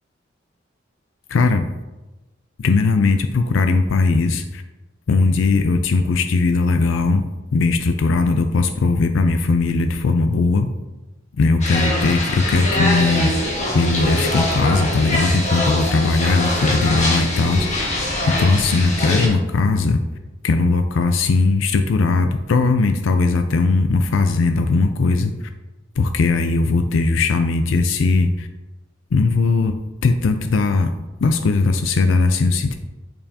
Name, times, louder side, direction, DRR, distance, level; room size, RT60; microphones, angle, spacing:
voice 1, 1.3-1.7 2.6-4.6 5.1-7.3 7.5-10.7 11.4-13.3 13.7-17.8 18.3-20.0 20.4-25.3 26.0-28.5 29.1-30.9 31.2-32.8, left 3 dB, 75° left, 7 dB, 0.4 m, -18 dB
sound 1, 11.6-19.3, left 1 dB, 35° left, 1.3 m, -23 dB
6.8 x 5.5 x 2.8 m, 1.1 s
head